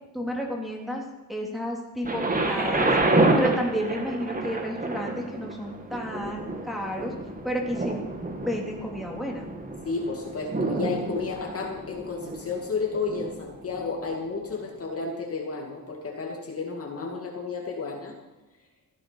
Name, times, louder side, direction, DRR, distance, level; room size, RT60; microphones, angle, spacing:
voice 1, 0.1-1.0 1.3-2.9 3.3-7.1 7.4-8.0 8.4-9.5, equal, ahead, -2 dB, 3.3 m, -31 dB
Thunder, 2.0-13.9 14.7-14.8, right 2 dB, 20° right, 2.0 m, -28 dB
voice 2, 9.8-18.1, left 4 dB, 40° left, 0 dB, 2.3 m, -32 dB
15.5 x 10.0 x 5.8 m, 1.1 s
cardioid pair, 105°, 38 cm